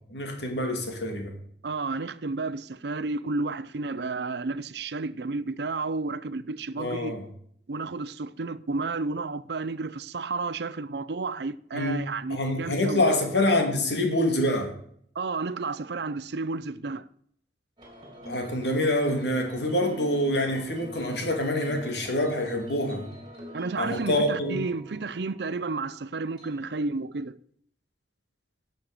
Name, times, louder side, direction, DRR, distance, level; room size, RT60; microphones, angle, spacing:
voice 1, 0.1-1.3 6.8-7.2 11.7-14.7 18.3-23.0 23.8-24.7, left 1 dB, 70° left, 2.5 m, -26 dB
voice 2, 1.6-7.1 7.7-13.0 15.1-17.1 23.5-27.4, right 3 dB, 65° right, 0.6 m, -31 dB
sound 1, 17.8-26.6, equal, 25° right, 3.0 m, -45 dB
11.5 x 6.5 x 6.7 m
head